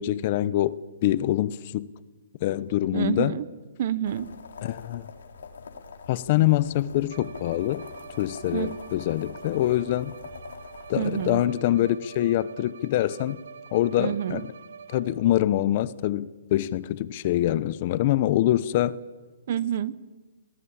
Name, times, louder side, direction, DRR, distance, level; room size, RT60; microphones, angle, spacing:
voice 1, 0.0-1.9 2.4-3.4 4.6-5.1 6.1-7.8 8.2-10.1 10.9-13.4 13.7-14.4 14.9-19.0, left 13 dB, 35° left, 0.7 m, -25 dB
voice 2, 2.9-3.5 3.8-4.3 8.5-8.7 11.0-11.4 14.0-14.4 19.5-19.9, right 10 dB, 45° right, 0.9 m, -28 dB
sound 1, 4.1-11.5, left 5 dB, 80° left, 3.2 m, -44 dB
Bowed string instrument, 7.1-15.4, right 6 dB, 75° right, 1.3 m, -45 dB
27.0 x 19.0 x 8.7 m
hypercardioid pair, 170°, 0 cm